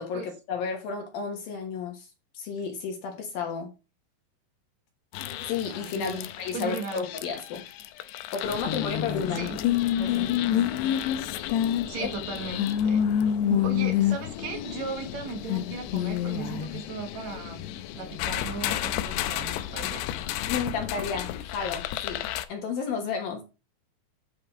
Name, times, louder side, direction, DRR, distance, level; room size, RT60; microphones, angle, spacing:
voice 1, 0.0-2.1 2.3-3.7 5.4-7.6 8.3-9.5 12.0-12.1 20.5-22.2 22.5-23.4, left 6 dB, 65° left, 2.8 m, -32 dB
sound 1, 5.1-22.5, left 11 dB, 85° left, 2.7 m, -29 dB
voice 2, 5.9-7.0 9.3-9.6 10.0-10.7 11.9-13.0 13.5-17.7 18.0-20.0, right 5 dB, 55° right, 2.2 m, -37 dB
10.0 x 5.4 x 4.3 m
omnidirectional pair, 4.8 m